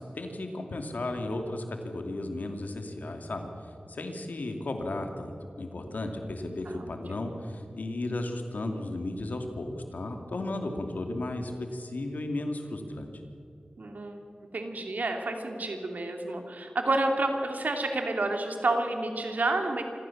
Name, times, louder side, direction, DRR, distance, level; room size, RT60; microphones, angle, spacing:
voice 1, 0.0-3.5 3.9-13.1, left 2 dB, 80° left, 5 dB, 2.6 m, -34 dB
voice 2, 6.7-7.2 13.8-14.2 14.5-19.8, right 2 dB, 80° right, 4 dB, 2.9 m, -30 dB
26.0 x 15.5 x 7.3 m, 2.8 s
wide cardioid pair, 50°, 3 cm